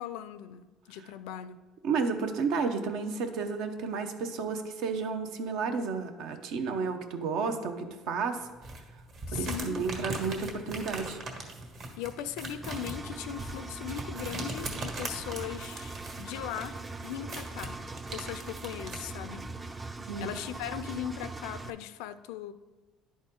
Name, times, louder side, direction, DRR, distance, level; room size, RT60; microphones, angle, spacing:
voice 1, 0.0-1.6 9.3-9.9 12.0-19.5 20.2-22.5, left 10 dB, 90° left, 13 dB, 0.4 m, -39 dB
voice 2, 1.8-8.5 9.3-11.2 20.0-20.3, right 5 dB, 70° right, 7 dB, 0.7 m, -32 dB
sound 1, 8.6-19.1, right 2 dB, 50° right, 1.5 m, -40 dB
Engine, 12.6-21.7, right 3 dB, 20° right, 0.4 m, -41 dB
10.5 x 4.2 x 3.7 m, 1.2 s
cardioid pair, 120°, 0 cm